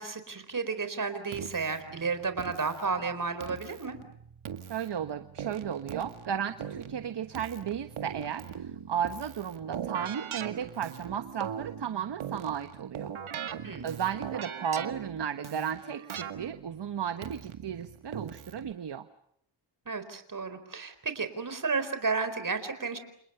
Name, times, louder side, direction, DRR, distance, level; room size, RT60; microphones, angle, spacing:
voice 1, 0.0-4.0 13.6-13.9 19.9-23.0, right 4 dB, 40° right, 10 dB, 4.3 m, -32 dB
Keyboard (musical), 1.3-18.7, right 8 dB, 85° right, 2.0 m, -41 dB
voice 2, 4.7-13.1 13.4-13.5 13.8-19.1, right 8 dB, 60° right, 9 dB, 1.3 m, -34 dB
30.0 x 27.5 x 6.8 m, 0.72 s
wide cardioid pair, 95°, 47 cm